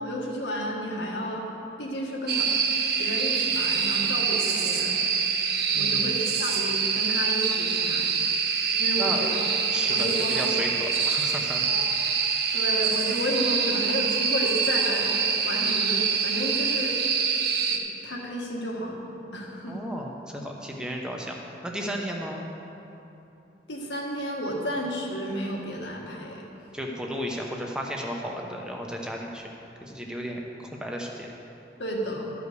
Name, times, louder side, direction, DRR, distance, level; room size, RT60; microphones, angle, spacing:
voice 1, 0.0-1.4 1.8-2.5 3.0-5.0 5.7-8.2 8.8-9.5 9.9-10.5 11.7-11.8 12.5-17.0 17.7-19.0 19.3-19.8 23.7-26.4 31.8-32.3, equal, 80° left, -2 dB, 1.6 m, -32 dB
sound 1, 2.3-17.8, right 6 dB, 60° right, 0.7 m, -25 dB
voice 2, 5.7-6.2 9.0-9.2 9.7-11.7 12.2-12.4 19.7-21.4 21.6-22.4 26.7-29.5 29.8-31.3, equal, 5° right, 0 dB, 0.8 m, -34 dB
13.0 x 5.0 x 6.7 m, 3.0 s
head